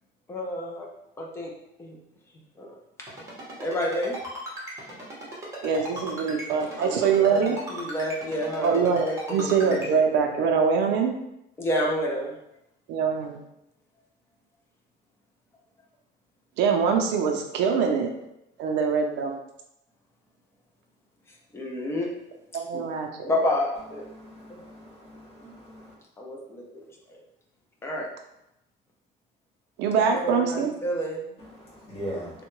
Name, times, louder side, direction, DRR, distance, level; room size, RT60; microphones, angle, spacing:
voice 1, 0.3-0.9 1.2-1.5 1.8-2.0 2.6-2.7 3.6-4.2 6.8-10.0 11.6-12.4 21.5-22.1 22.7-22.8 23.2-24.0 24.5-24.6 25.4-25.5 26.2-26.8 27.1-27.2 27.8-28.1 30.0-31.2, left 1 dB, 15° left, 0.4 m, -30 dB
Ringtone, 3.1-9.9, equal, 15° right, 0.8 m, -37 dB
voice 2, 5.6-7.6 8.6-11.1 12.9-13.4 16.6-18.1 18.6-19.3 22.6-23.1 29.8-30.7, right 6 dB, 65° right, 0.5 m, -23 dB
voice 3, 24.1-25.9 31.4-32.4, equal, 30° left, 1.3 m, -40 dB
3.5 x 2.2 x 3.0 m
cardioid pair, 170°, 19 cm